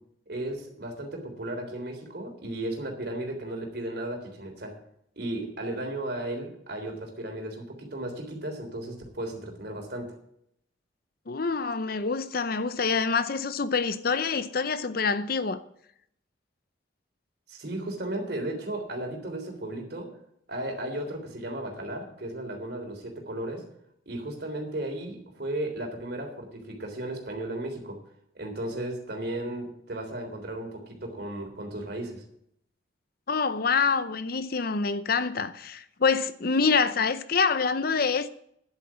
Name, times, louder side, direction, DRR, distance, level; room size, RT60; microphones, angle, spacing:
voice 1, 0.3-4.8 5.2-10.2 17.5-20.1 20.5-23.7 24.1-28.0 28.4-32.2, right 1 dB, 55° right, 3.4 m, -35 dB
voice 2, 11.3-15.6 33.3-38.4, left 5 dB, 50° left, 0.6 m, -26 dB
10.5 x 8.3 x 7.5 m
head